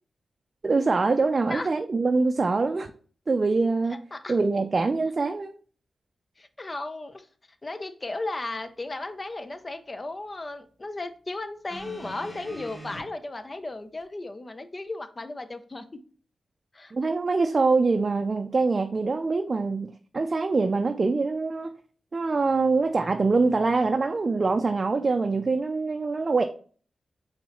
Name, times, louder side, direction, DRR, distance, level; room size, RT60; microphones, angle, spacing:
voice 1, 0.6-2.9 3.3-4.0 4.3-5.5 16.9-21.7 22.1-26.4, right 3 dB, 50° right, 0.4 m, -24 dB
voice 2, 6.4-7.3 7.6-16.0 16.7-16.9, left 2 dB, 40° left, 0.6 m, -35 dB
sound 1, 11.7-13.0 14.0-14.1, equal, 20° left, 2.1 m, -41 dB
5.3 x 3.3 x 3.1 m
supercardioid pair, 40°, 0 cm